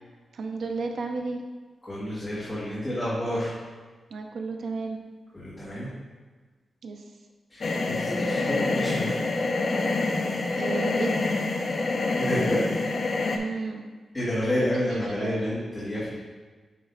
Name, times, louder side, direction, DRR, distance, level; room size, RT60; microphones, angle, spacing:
voice 1, 0.3-1.4 4.1-5.0 6.8-7.0 10.6-11.4 13.3-13.8 14.6-15.4, right 3 dB, 70° right, 3 dB, 0.7 m, -32 dB
voice 2, 1.8-3.5 5.3-5.9 7.5-9.2 12.2-12.7 14.1-16.1, equal, 15° left, -13 dB, 2.1 m, -29 dB
sound 1, 7.6-13.4, left 3 dB, 40° left, 0.6 m, -26 dB
9.3 x 3.3 x 4.0 m, 1.4 s
wide cardioid pair, 180°, 0 cm